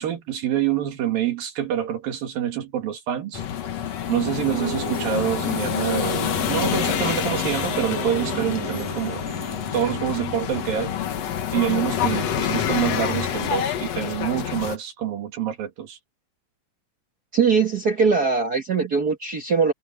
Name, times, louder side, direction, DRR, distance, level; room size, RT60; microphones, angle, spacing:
voice 1, 0.0-3.4 4.1-9.2 9.7-10.9 11.5-16.0, right 10 dB, 80° right, 3.8 m, -26 dB
sound 1, 3.3-14.8, left 9 dB, 55° left, 2.2 m, -27 dB
sound 2, 3.4-12.7, right 6 dB, 35° right, 2.3 m, -36 dB
voice 2, 17.3-19.7, right 5 dB, 50° right, 1.1 m, -21 dB
omnidirectional pair, 4.0 m